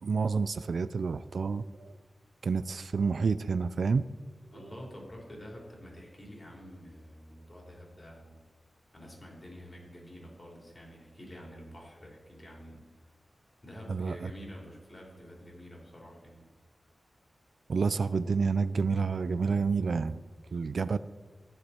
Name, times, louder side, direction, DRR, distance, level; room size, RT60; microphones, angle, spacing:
voice 1, 0.0-2.0 2.4-4.1 4.6-4.7 13.9-14.3 17.7-20.2 20.5-21.0, right 5 dB, 70° right, 14 dB, 0.4 m, -29 dB
voice 2, 4.5-8.4 8.9-12.9 13.6-16.5, equal, 30° left, -1 dB, 3.9 m, -48 dB
14.5 x 9.9 x 4.4 m, 1.5 s
wide cardioid pair, 120°, 0 cm